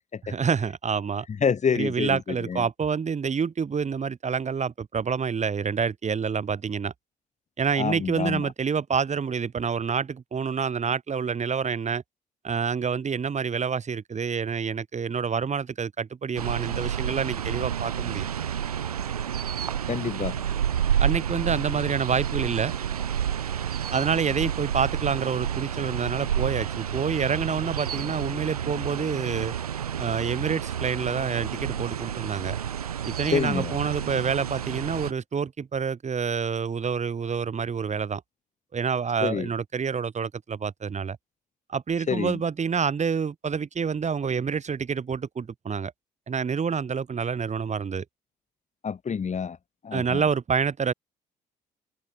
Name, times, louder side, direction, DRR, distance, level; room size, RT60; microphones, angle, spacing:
voice 1, 0.2-1.3 1.7-6.9 7.6-12.0 12.4-18.3 21.0-22.7 23.9-29.5 30.0-32.6 33.0-38.2 38.7-41.2 41.7-45.9 46.3-48.0 49.9-50.9, right 6 dB, 40° right, 6.1 m, -27 dB
voice 2, 1.4-2.2 2.5-2.6 7.8-8.5 19.9-20.3 33.3-33.7 39.2-39.5 42.1-42.4 48.8-49.6 49.8-50.2, left 6 dB, 40° left, 4.6 m, -27 dB
sound 1, 16.4-35.1, right 9 dB, 90° right, 7.6 m, -30 dB
hypercardioid pair, 55°, 19 cm